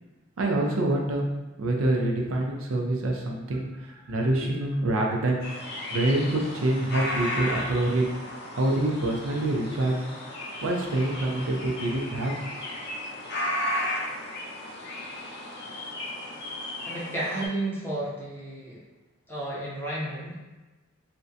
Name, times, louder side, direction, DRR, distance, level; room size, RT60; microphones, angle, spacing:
voice 1, 0.4-1.3 1.6-5.5 5.9-8.0 8.6-10.0 10.6-12.3, right 1 dB, 85° right, 0 dB, 0.4 m, -26 dB
Quiet neighborhood at dusk, 5.4-17.5, left 1 dB, 55° left, 0.4 m, -34 dB
voice 2, 16.9-18.8 19.3-20.3, right 1 dB, 10° left, -7 dB, 0.6 m, -32 dB
2.6 x 2.1 x 2.4 m, 1.2 s
head